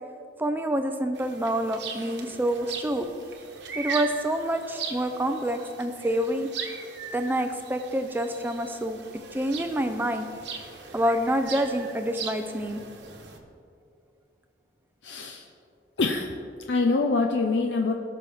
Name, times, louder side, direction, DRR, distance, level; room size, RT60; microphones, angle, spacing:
voice 1, 0.4-3.1 3.8-6.5 7.1-9.0 9.3-10.3 10.9-12.8, right 1 dB, 10° right, 7 dB, 0.4 m, -27 dB
sound 1, 1.1-13.4, right 5 dB, 65° right, 1.1 m, -39 dB
voice 2, 15.0-15.4 16.0-16.3 16.7-17.9, left 3 dB, 65° left, 2 dB, 0.6 m, -24 dB
18.0 x 6.2 x 3.5 m, 2.4 s
head